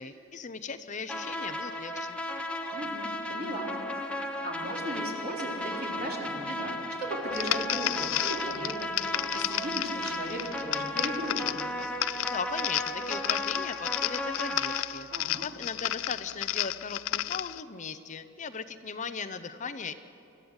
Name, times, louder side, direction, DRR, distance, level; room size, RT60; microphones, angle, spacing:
voice 1, 0.0-2.2 12.2-15.1 15.4-19.9, left 5 dB, 40° left, 11 dB, 0.7 m, -38 dB
sound 1, 1.1-14.8, left 1 dB, 5° left, 1.3 m, -35 dB
voice 2, 2.7-3.7 4.4-11.6 15.1-15.4, right 1 dB, 50° right, -1 dB, 4.1 m, -37 dB
sound 2, 7.3-17.6, left 14 dB, 85° left, 0.4 m, -33 dB
25.0 x 15.0 x 8.0 m, 2.8 s
head